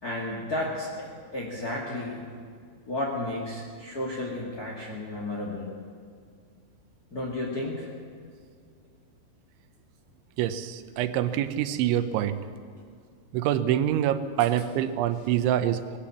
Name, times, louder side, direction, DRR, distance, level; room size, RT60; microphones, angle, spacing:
voice 1, 0.0-2.4 2.9-5.7 7.1-7.9, left 1 dB, 35° left, -3 dB, 1.5 m, -33 dB
voice 2, 10.4-12.4 13.3-16.0, right 11 dB, 80° right, 11 dB, 3.0 m, -26 dB
21.0 x 17.0 x 7.2 m, 2.2 s
omnidirectional pair, 5.6 m